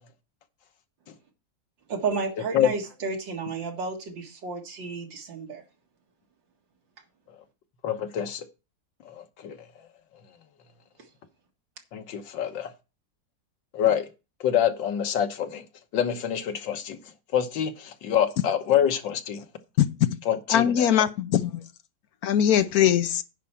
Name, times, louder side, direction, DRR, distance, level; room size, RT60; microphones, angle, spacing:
voice 1, 1.9-5.6, right 4 dB, 80° right, 2.5 m, -32 dB
voice 2, 7.8-8.5 9.1-9.6 11.9-12.7 13.7-14.1 14.4-15.6 15.9-17.0 17.3-19.4 20.3-20.9, left 9 dB, 90° left, 1.8 m, -26 dB
voice 3, 20.5-21.5 22.2-23.2, left 10 dB, 65° left, 1.1 m, -21 dB
10.0 x 4.4 x 7.2 m
omnidirectional pair, 2.0 m